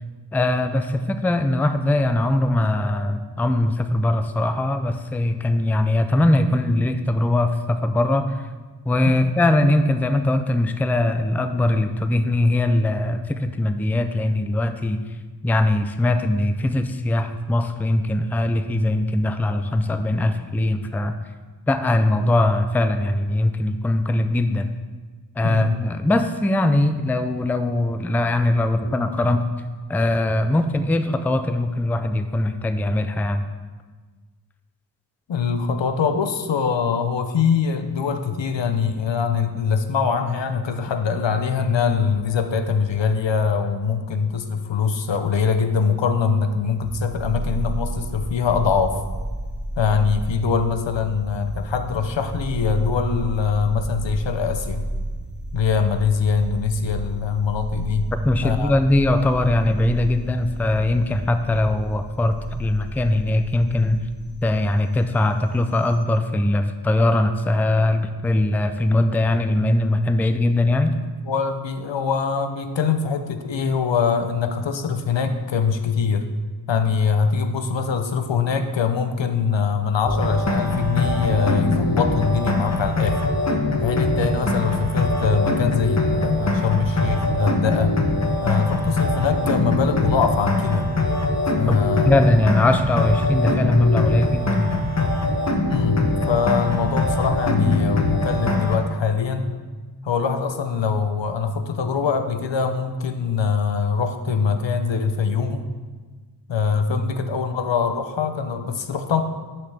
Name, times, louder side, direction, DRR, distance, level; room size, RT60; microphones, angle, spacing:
voice 1, 0.3-8.2 8.9-15.0 15.4-21.2 21.7-24.7 25.4-29.4 29.9-33.4 58.1-64.0 64.4-71.0 91.7-91.8 92.0-94.8 106.9-107.1, left 1 dB, 5° left, 9 dB, 0.3 m, -21 dB
voice 2, 35.3-49.0 49.8-54.9 55.5-58.1 58.4-58.7 71.3-76.3 76.7-83.2 83.8-88.0 88.4-90.9 91.6-92.1 95.7-99.5 100.0-105.7 106.5-109.2, left 5 dB, 80° left, 7 dB, 0.7 m, -23 dB
sound 1, 46.7-66.0, right 1 dB, 25° right, 1.4 m, -32 dB
sound 2, 80.1-98.8, left 2 dB, 40° left, 0.9 m, -22 dB
9.4 x 5.9 x 3.4 m, 1.4 s
wide cardioid pair, 70°, 43 cm